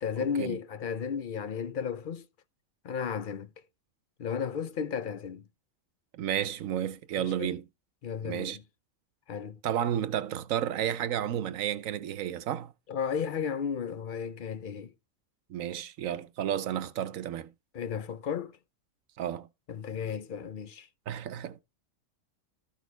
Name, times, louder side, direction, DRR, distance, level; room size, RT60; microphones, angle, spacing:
voice 1, 0.0-2.2 2.8-3.5 4.2-5.4 7.2-7.5 8.0-8.6 9.3-9.6 12.9-14.9 17.7-18.6 19.7-20.9, left 7 dB, 50° left, 0.7 m, -34 dB
voice 2, 6.1-7.7 8.2-8.6 9.6-12.7 15.5-17.5 19.2-19.5 21.1-21.6, right 10 dB, 80° right, 1.1 m, -32 dB
13.0 x 6.3 x 3.3 m
omnidirectional pair, 1.4 m